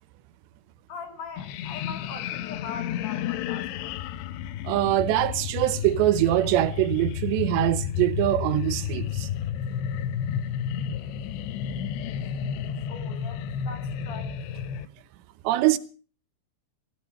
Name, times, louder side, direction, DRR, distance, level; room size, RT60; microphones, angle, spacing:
voice 1, 0.9-3.9 12.9-14.4, left 5 dB, 55° left, 3.2 m, -41 dB
sound 1, 1.4-14.9, left 9 dB, 85° left, 3.1 m, -31 dB
voice 2, 4.6-9.3 15.4-15.8, right 15 dB, 85° right, 3.1 m, -23 dB
16.0 x 14.5 x 5.6 m
omnidirectional pair, 4.9 m